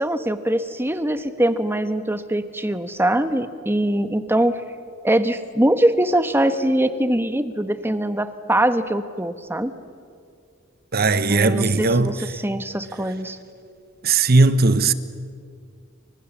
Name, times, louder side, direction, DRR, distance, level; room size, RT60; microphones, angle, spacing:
voice 1, 0.0-4.6 5.0-9.7 11.3-12.1 12.4-13.4, right 1 dB, 10° right, 1.1 m, -22 dB
voice 2, 10.9-12.2 14.0-14.9, right 3 dB, 50° right, 1.1 m, -18 dB
29.0 x 25.5 x 7.2 m
head